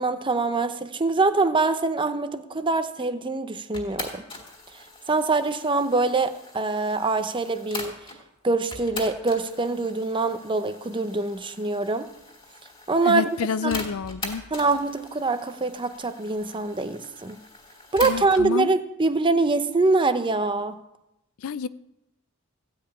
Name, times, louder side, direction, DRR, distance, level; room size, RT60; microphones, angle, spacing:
voice 1, 0.0-4.2 5.1-7.9 8.4-12.1 12.9-13.2 13.6-13.8 14.5-17.4 17.9-20.7, right 3 dB, 25° right, 0.7 m, -24 dB
sound 1, 3.7-8.2 8.7-18.5, left 2 dB, 25° left, 2.5 m, -41 dB
voice 2, 13.0-14.4 18.0-18.7 21.4-21.7, left 6 dB, 70° left, 0.4 m, -28 dB
15.0 x 5.6 x 8.7 m
head